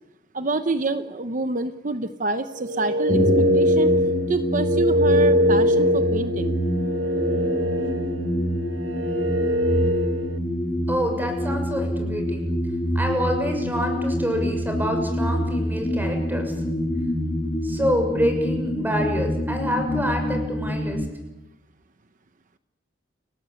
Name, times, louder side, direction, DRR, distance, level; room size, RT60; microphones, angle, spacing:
voice 1, 0.3-3.2 3.5-3.9 4.3-6.6, right 2 dB, 45° right, 10 dB, 1.0 m, -27 dB
sound 1, 2.5-10.4, equal, 75° right, 1.7 m, -23 dB
sound 2, 3.1-21.1, equal, 20° left, 6.1 m, -26 dB
voice 2, 10.9-12.4 12.9-16.5 17.6-21.0, equal, 10° right, 4 dB, 6.4 m, -27 dB
30.0 x 19.0 x 8.5 m, 0.94 s
head